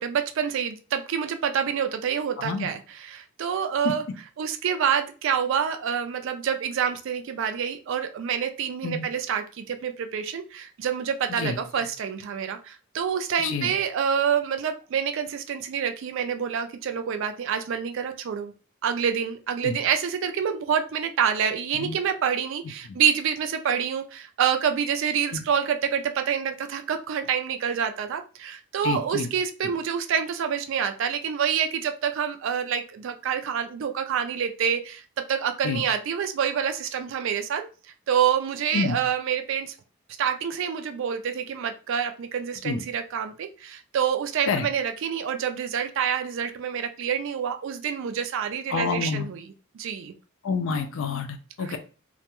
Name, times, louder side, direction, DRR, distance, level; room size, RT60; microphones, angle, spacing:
voice 1, 0.0-4.0 4.4-18.5 18.8-35.0 35.3-37.7 38.1-39.7 40.2-49.5 49.7-50.1 51.7-51.8, right 8 dB, 65° right, 8 dB, 0.3 m, -27 dB
voice 2, 13.4-13.7 19.6-19.8 21.7-22.0 25.3-25.4 28.8-29.3 35.6-35.8 38.7-39.0 42.6-42.8 44.5-44.7 48.7-49.3 50.4-51.8, left 4 dB, 65° left, 8 dB, 0.4 m, -28 dB
2.2 x 2.1 x 2.9 m, 0.35 s
head